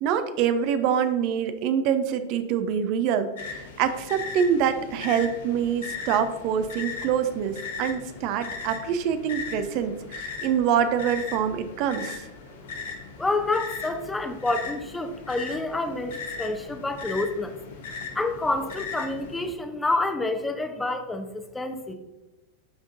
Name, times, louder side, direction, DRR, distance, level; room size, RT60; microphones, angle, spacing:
voice 1, 0.0-12.2, right 8 dB, 45° right, 10 dB, 0.5 m, -25 dB
sound 1, 3.4-19.5, left 5 dB, 60° left, 0.9 m, -38 dB
voice 2, 13.2-17.6 18.1-21.9, left 2 dB, 10° left, 6 dB, 0.7 m, -28 dB
11.0 x 3.6 x 2.5 m, 1.1 s
figure-of-eight pair, 90°, 0 cm